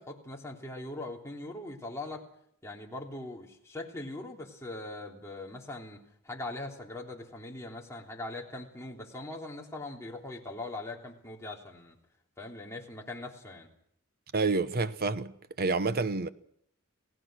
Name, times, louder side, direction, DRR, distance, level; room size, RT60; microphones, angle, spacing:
voice 1, 0.0-2.2 2.6-11.9 12.4-13.7, left 2 dB, 15° left, 3.3 m, -41 dB
voice 2, 14.3-16.3, right 3 dB, 45° right, 0.9 m, -29 dB
28.0 x 17.5 x 6.3 m
head